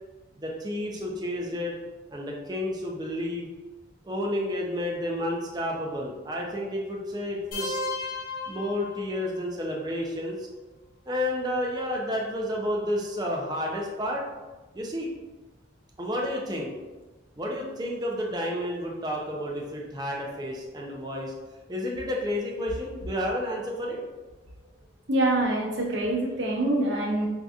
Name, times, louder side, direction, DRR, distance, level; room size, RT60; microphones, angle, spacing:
voice 1, 0.4-1.8 2.1-3.5 4.0-7.8 8.5-10.5 11.1-14.2 14.7-15.1 16.0-16.7 17.4-21.3 21.7-24.0, left 1 dB, 20° right, -2 dB, 0.5 m, -31 dB
sound 1, 7.5-9.5, left 3 dB, 45° left, 0.6 m, -34 dB
voice 2, 25.1-27.3, right 1 dB, 65° right, -2 dB, 0.8 m, -25 dB
4.6 x 2.7 x 2.4 m, 1.2 s
head